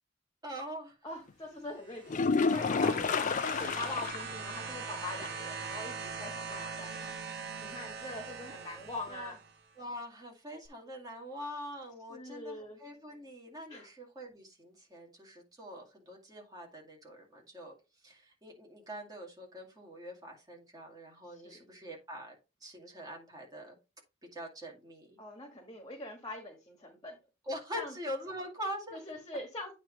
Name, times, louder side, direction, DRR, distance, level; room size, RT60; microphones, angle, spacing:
voice 1, 0.4-1.0 4.6-5.0 9.1-9.3 9.8-17.7 18.0-22.4 22.6-23.8 24.2-25.2 27.4-29.0, equal, 20° right, -1 dB, 2.2 m, -44 dB
voice 2, 1.0-7.1 7.6-9.4 12.1-12.8 13.7-13.9 21.3-21.6 25.2-27.2 27.7-27.9 28.9-29.7, left 2 dB, 20° left, 3 dB, 1.4 m, -43 dB
sound 1, 1.8-9.6 10.6-10.7, right 5 dB, 60° right, 1.2 m, -42 dB
sound 2, 2.1-4.3 4.7-4.8 5.2-5.3 9.1-9.2, left 4 dB, 40° left, 0.4 m, -29 dB
8.9 x 3.2 x 5.2 m, 0.28 s
head